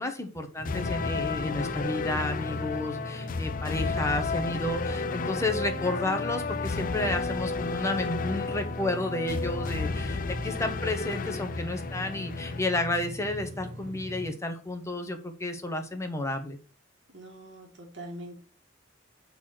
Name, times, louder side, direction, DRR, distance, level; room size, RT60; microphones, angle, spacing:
voice 1, 0.0-16.6, left 2 dB, 15° left, 5 dB, 1.2 m, -31 dB
sound 1, 0.6-12.6, left 4 dB, 45° left, 0.5 m, -32 dB
sound 2, 0.6-14.3, equal, 45° right, 1.3 m, -40 dB
voice 2, 2.5-3.7 17.1-18.4, right 1 dB, 65° right, 1 dB, 2.4 m, -45 dB
6.6 x 4.2 x 6.1 m, 0.37 s
head